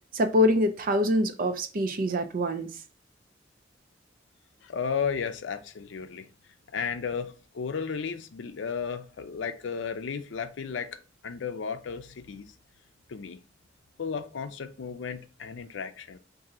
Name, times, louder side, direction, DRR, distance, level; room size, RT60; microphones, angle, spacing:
voice 1, 0.1-2.7, left 1 dB, 50° right, 0.5 m, -25 dB
voice 2, 4.6-6.3 6.7-12.5 13.1-13.4 14.0-16.2, left 6 dB, 75° left, 0.5 m, -34 dB
3.7 x 2.6 x 4.1 m
head